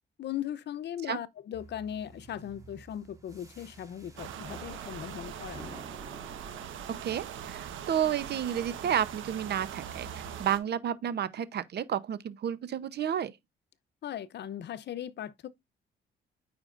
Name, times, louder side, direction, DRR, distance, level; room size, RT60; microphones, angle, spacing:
voice 1, 0.2-5.8 14.0-15.5, left 10 dB, 60° left, 0.7 m, -38 dB
sound 1, 1.5-10.4, right 2 dB, 15° right, 2.7 m, -51 dB
sound 2, 4.2-10.6, right 9 dB, 80° right, 1.2 m, -41 dB
voice 2, 7.0-13.3, right 9 dB, 55° right, 0.8 m, -31 dB
9.0 x 5.1 x 2.5 m
cardioid pair, 90°, 20 cm